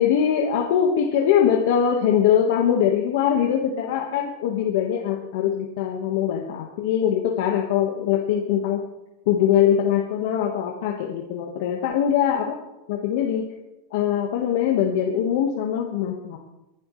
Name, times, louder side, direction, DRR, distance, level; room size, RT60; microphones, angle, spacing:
voice 1, 0.0-8.8 9.3-12.5 12.9-13.4 13.9-16.4, left 9 dB, 60° left, 1 dB, 1.6 m, -22 dB
29.5 x 11.5 x 3.3 m, 0.99 s
supercardioid pair, 165°, 0 cm